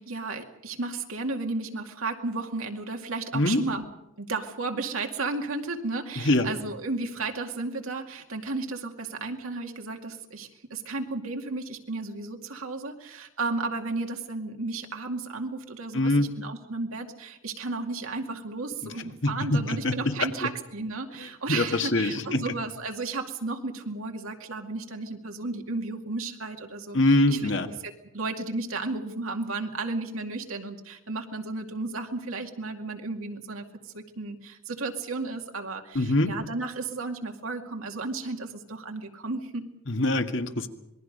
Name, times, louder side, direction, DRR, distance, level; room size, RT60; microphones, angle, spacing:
voice 1, 0.0-3.9 4.2-27.4 27.7-39.7, right 3 dB, 85° right, 3 dB, 2.3 m, -33 dB
voice 2, 6.2-6.5 15.9-16.3 19.0-20.5 21.5-22.4 26.9-27.7 35.9-36.3 39.9-40.7, left 2 dB, 60° left, 6 dB, 1.7 m, -24 dB
26.5 x 21.0 x 5.4 m, 0.91 s
head